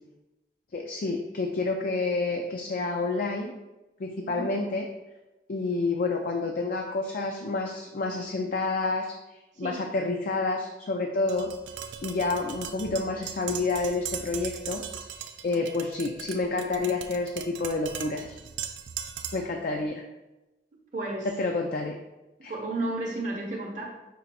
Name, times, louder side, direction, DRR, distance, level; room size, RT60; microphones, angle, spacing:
voice 1, 0.7-3.5 4.0-4.9 5.5-9.1 9.6-11.5 12.0-14.8 15.4-18.4 19.3-20.0 21.2-22.0 22.4-22.5, left 3 dB, 50° left, 3 dB, 0.4 m, -29 dB
Tap, 11.3-19.6, right 8 dB, 85° right, 0.4 m, -39 dB
voice 2, 20.9-21.3 22.5-23.9, right 2 dB, 45° right, -2 dB, 0.7 m, -32 dB
5.3 x 2.4 x 4.1 m, 1.0 s
head